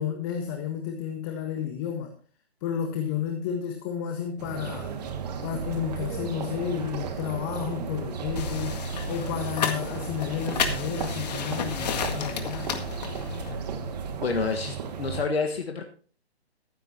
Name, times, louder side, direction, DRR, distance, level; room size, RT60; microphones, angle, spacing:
voice 1, 0.0-2.1 2.6-5.0 5.4-12.8, left 9 dB, 20° left, 5 dB, 1.4 m, -32 dB
sound 1, 4.4-15.2, right 6 dB, 40° right, 2.1 m, -34 dB
sound 2, 8.4-13.5, left 6 dB, 40° left, 1.9 m, -32 dB
voice 2, 14.2-15.9, left 4 dB, 70° left, 4 dB, 1.6 m, -29 dB
15.0 x 11.5 x 2.9 m, 0.41 s
figure-of-eight pair, 145°, 32 cm